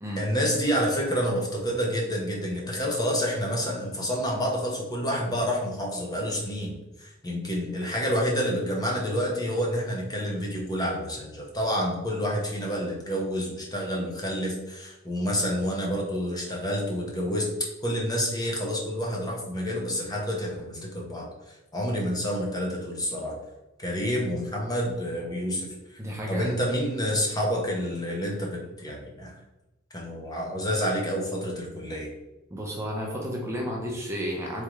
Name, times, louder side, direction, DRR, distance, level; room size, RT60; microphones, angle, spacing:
voice 1, 0.2-17.5 17.8-21.3 21.7-23.4 23.8-26.0 26.3-29.3 29.9-32.1, equal, 20° left, -1 dB, 0.7 m, -28 dB
voice 2, 26.0-26.6 32.5-34.6, equal, 15° right, -2 dB, 0.6 m, -32 dB
3.7 x 3.4 x 3.1 m, 1.0 s
head